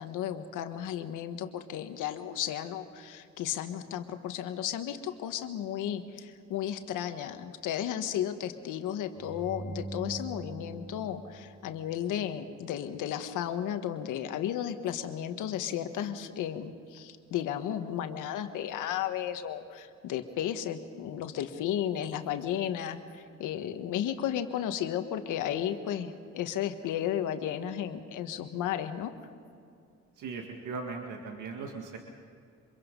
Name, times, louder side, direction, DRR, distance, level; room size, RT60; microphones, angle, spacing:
voice 1, 0.0-29.1, left 10 dB, 90° left, 8 dB, 1.5 m, -34 dB
sound 1, 9.2-12.4, right 2 dB, 5° right, 0.7 m, -43 dB
voice 2, 30.2-32.0, right 4 dB, 80° right, 2 dB, 2.0 m, -38 dB
26.0 x 22.5 x 5.4 m, 2.5 s
cardioid pair, 90°, 30 cm